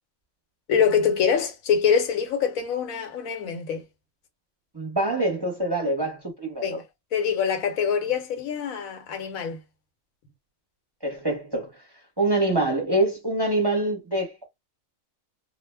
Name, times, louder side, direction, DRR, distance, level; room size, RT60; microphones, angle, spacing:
voice 1, 0.7-3.8 6.6-6.8 7.1-9.6, left 7 dB, 80° left, 1.1 m, -24 dB
voice 2, 4.7-6.8 11.0-11.7 12.2-14.5, right 2 dB, 20° right, 0.7 m, -25 dB
2.4 x 2.1 x 3.3 m
omnidirectional pair, 1.4 m